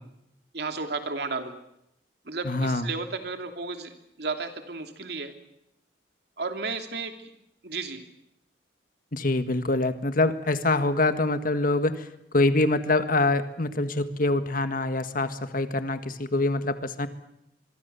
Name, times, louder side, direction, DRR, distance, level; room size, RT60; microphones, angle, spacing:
voice 1, 0.5-1.5 2.3-5.3 6.4-7.1 7.6-8.0, right 4 dB, 65° right, 5 dB, 2.9 m, -33 dB
voice 2, 2.4-2.9 9.1-12.0 12.3-17.1, left 2 dB, 55° left, 10 dB, 1.7 m, -25 dB
25.0 x 23.5 x 7.0 m, 0.82 s
head